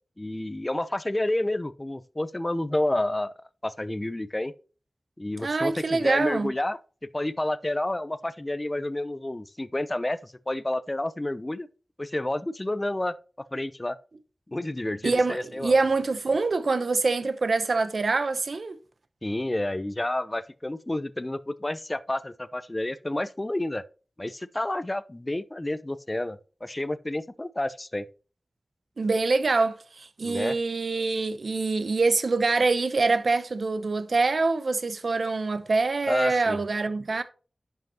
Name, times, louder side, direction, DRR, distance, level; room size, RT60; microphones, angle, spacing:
voice 1, 0.2-3.3 3.6-4.5 5.2-6.8 7.1-11.7 12.0-14.0 14.5-15.7 19.2-23.8 24.2-28.0 30.2-30.6 36.1-36.6, left 1 dB, 25° left, 0.7 m, -30 dB
voice 2, 5.4-6.5 15.0-18.8 29.0-37.2, right 3 dB, 75° right, 0.8 m, -25 dB
10.5 x 5.7 x 2.9 m
wide cardioid pair, 60°, 0 cm